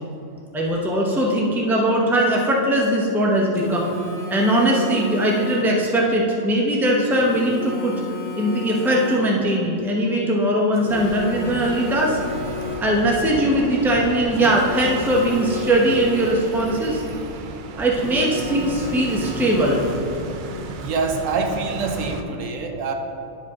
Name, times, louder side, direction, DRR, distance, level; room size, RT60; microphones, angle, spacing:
voice 1, 0.5-3.9 4.3-8.0 8.4-12.2 12.8-17.0 17.8-19.8, right 1 dB, ahead, -2 dB, 0.7 m, -20 dB
Telephone, 3.5-5.9 7.1-9.5 10.7-13.1 14.3-16.7 17.9-20.3, left 3 dB, 50° left, 2.1 m, -33 dB
sound 1, 10.9-22.2, right 4 dB, 60° right, 0.5 m, -34 dB
voice 2, 20.8-22.9, right 4 dB, 90° right, 4 dB, 1.1 m, -25 dB
10.5 x 4.9 x 3.6 m, 2.7 s
omnidirectional pair, 1.3 m